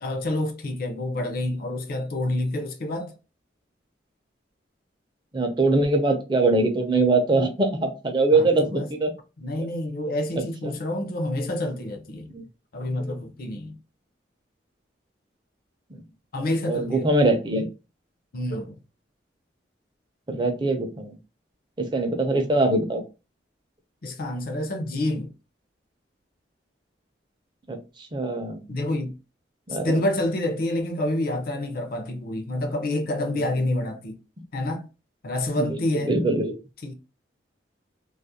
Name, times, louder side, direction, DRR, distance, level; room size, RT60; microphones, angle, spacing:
voice 1, 0.0-3.1 8.3-8.9 9.4-12.3 12.7-13.8 16.3-17.1 18.3-18.8 24.0-25.3 28.7-29.2 29.8-34.2 34.5-34.8 35.2-36.2 36.8-36.9, left 1 dB, 50° left, 0.5 m, -28 dB
voice 2, 5.3-9.1 10.6-10.7 12.3-12.4 15.9-16.0 16.7-17.7 20.3-21.2 21.8-23.0 27.7-27.8 28.1-28.6 29.7-30.0 35.6-35.8 36.0-36.6, right 2 dB, 25° right, 0.5 m, -22 dB
2.3 x 2.0 x 2.7 m
head